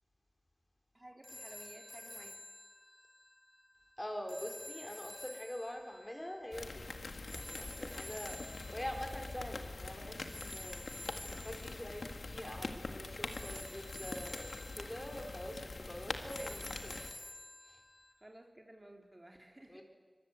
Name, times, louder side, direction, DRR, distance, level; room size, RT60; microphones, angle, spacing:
voice 1, 0.9-2.3 16.4-16.8 18.2-19.8, right 1 dB, 30° right, 2 dB, 3.0 m, -55 dB
sound 1, 1.2-18.1, left 1 dB, 35° left, 2.5 m, -51 dB
voice 2, 4.0-10.8 11.3-16.6 16.8-16.9 17.7-17.8 19.7-19.8, equal, 20° left, 3 dB, 4.3 m, -45 dB
sound 2, 6.5-17.1, left 3 dB, 85° left, 1.9 m, -44 dB
24.5 x 23.0 x 8.2 m, 1.4 s
wide cardioid pair, 60°, 0 cm